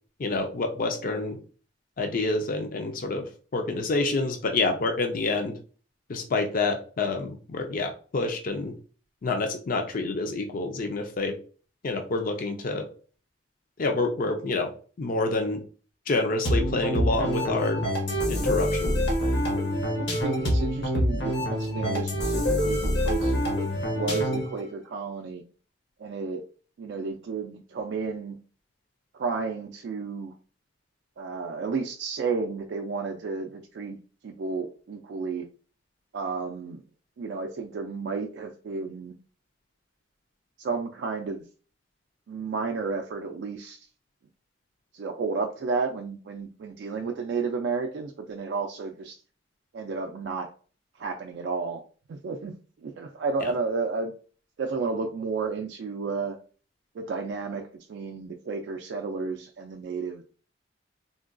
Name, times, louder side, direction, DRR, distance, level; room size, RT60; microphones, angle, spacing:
voice 1, 0.2-1.4 2.0-3.2 3.5-5.6 6.1-8.7 9.2-11.3 11.8-12.8 13.8-14.7 15.0-15.6 16.1-17.9 18.3-18.9 53.4-53.5, left 3 dB, 45° left, 4 dB, 0.5 m, -27 dB
sound 1, 16.5-24.6, equal, 65° left, 1.0 m, -26 dB
voice 2, 19.9-25.4 26.0-26.4 26.8-28.3 29.1-30.3 31.2-34.0 34.2-35.5 36.1-36.8 37.2-39.1 40.6-41.4 42.3-43.9 44.9-49.2 49.7-50.5 51.0-51.8 52.1-52.6 52.8-54.1 54.6-56.4 57.0-60.2, right 4 dB, 65° right, 3 dB, 0.3 m, -32 dB
3.7 x 2.2 x 2.4 m, 0.40 s
head